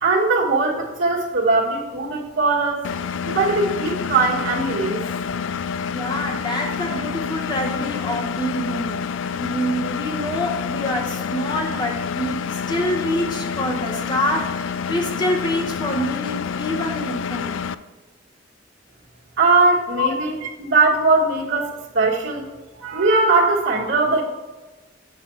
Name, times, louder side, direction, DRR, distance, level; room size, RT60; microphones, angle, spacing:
voice 1, 0.0-2.8 3.2-5.0 19.4-20.3 20.6-22.5 22.8-24.2, right 3 dB, 85° right, -6 dB, 1.4 m, -20 dB
Engine, 2.8-17.7, left 6 dB, 85° left, 0.4 m, -28 dB
voice 2, 5.9-17.7 20.0-20.1, left 1 dB, 25° left, 1 dB, 0.9 m, -26 dB
8.4 x 5.9 x 4.5 m, 1.2 s
head